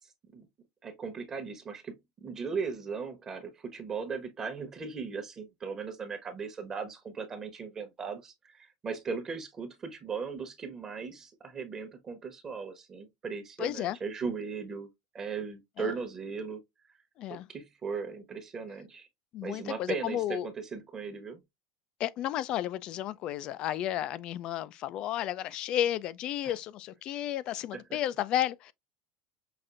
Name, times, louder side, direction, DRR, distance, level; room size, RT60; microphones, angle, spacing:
voice 1, 0.8-14.9 15.1-16.6 17.3-19.1 19.4-21.4 26.4-26.5 27.7-27.8, right 5 dB, 25° right, 1.0 m, -38 dB
voice 2, 13.6-14.0 15.8-15.9 17.2-17.5 19.3-20.5 22.0-28.7, left 12 dB, 45° left, 0.4 m, -32 dB
5.8 x 2.5 x 2.5 m
supercardioid pair, 130°, 2 cm